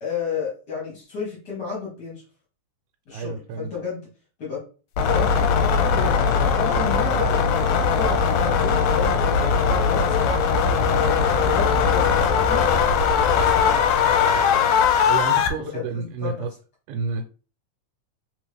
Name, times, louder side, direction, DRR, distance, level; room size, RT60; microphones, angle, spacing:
voice 1, 0.0-2.2 3.1-4.1 4.4-4.6 5.0-7.4 8.0-10.3 11.4-12.6 13.4-13.8 15.6-16.5, left 6 dB, 45° left, 1.4 m, -32 dB
voice 2, 3.1-3.7 15.0-16.5 16.9-17.2, right 5 dB, 85° right, 2.0 m, -30 dB
sound 1, 5.0-15.5, left 6 dB, 80° left, 1.8 m, -20 dB
3.9 x 3.5 x 3.3 m
omnidirectional pair, 3.4 m